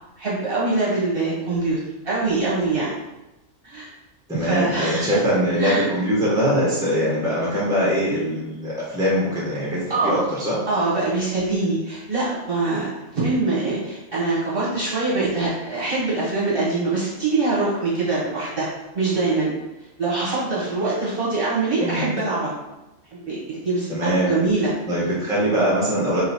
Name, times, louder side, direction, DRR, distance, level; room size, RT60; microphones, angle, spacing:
voice 1, 0.2-1.8 2.0-2.9 3.6-3.9 4.3-5.0 5.6-5.8 9.9-10.3 10.7-12.9 13.1-18.7 18.9-19.5 20.0-22.5 23.1-24.7, right 3 dB, 45° right, -8 dB, 1.2 m, -23 dB
voice 2, 4.3-10.6 21.8-22.1 23.9-24.4 24.9-26.2, equal, 5° right, -7 dB, 1.0 m, -22 dB
3.0 x 3.0 x 4.1 m, 0.99 s
omnidirectional pair, 1.5 m